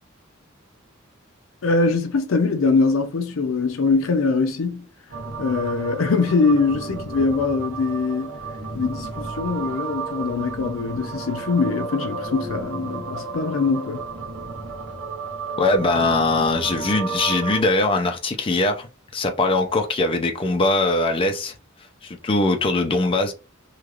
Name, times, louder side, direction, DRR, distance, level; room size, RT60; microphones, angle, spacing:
voice 1, 1.6-4.9 5.4-8.3 8.7-14.0, left 4 dB, 75° left, 0.5 m, -22 dB
sound 1, 5.1-17.6, right 4 dB, 85° right, 0.9 m, -32 dB
voice 2, 15.6-18.9 19.1-21.5 22.0-23.3, left 2 dB, 25° left, 0.4 m, -21 dB
3.1 x 2.3 x 2.4 m
head